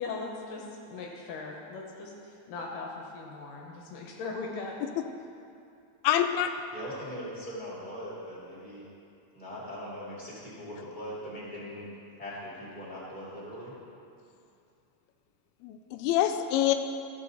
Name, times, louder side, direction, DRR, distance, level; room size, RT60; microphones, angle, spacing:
voice 1, 0.0-4.9, left 3 dB, 70° left, 0 dB, 2.3 m, -39 dB
voice 2, 6.0-6.5 15.6-16.7, left 11 dB, 90° left, 7 dB, 2.5 m, -25 dB
voice 3, 6.7-8.9 9.3-11.8 12.2-13.7, equal, 15° left, -8 dB, 2.4 m, -40 dB
14.0 x 7.1 x 4.0 m, 2.5 s
omnidirectional pair, 4.3 m